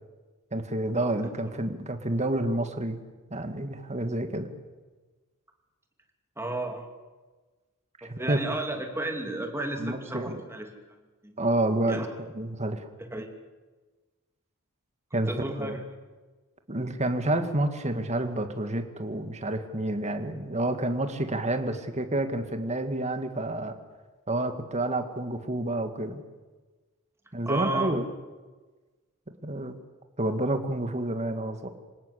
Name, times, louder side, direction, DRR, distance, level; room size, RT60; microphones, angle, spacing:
voice 1, 0.5-3.0 3.3-4.5 8.0-8.4 9.8-10.4 11.4-12.9 15.1-15.3 15.6-15.8 16.7-23.8 24.3-26.2 27.3-28.0 29.4-29.7 30.2-31.7, right 1 dB, 30° right, 7 dB, 2.0 m, -29 dB
voice 2, 6.4-7.0 8.0-10.7 11.2-11.4 11.9-12.1 13.1-13.3 15.1-15.8 27.4-28.0, right 2 dB, 10° right, 4 dB, 2.7 m, -33 dB
26.5 x 18.5 x 8.4 m, 1.3 s
head